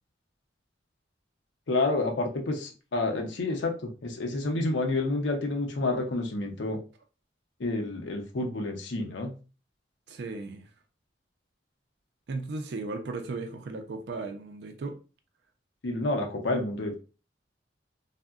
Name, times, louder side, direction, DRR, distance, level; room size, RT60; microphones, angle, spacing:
voice 1, 1.7-3.7 4.0-6.8 7.6-9.3 15.8-17.0, left 2 dB, 80° left, 0.6 m, -29 dB
voice 2, 10.1-10.7 12.3-15.0, right 3 dB, 65° right, 0.4 m, -36 dB
3.5 x 2.1 x 2.3 m
head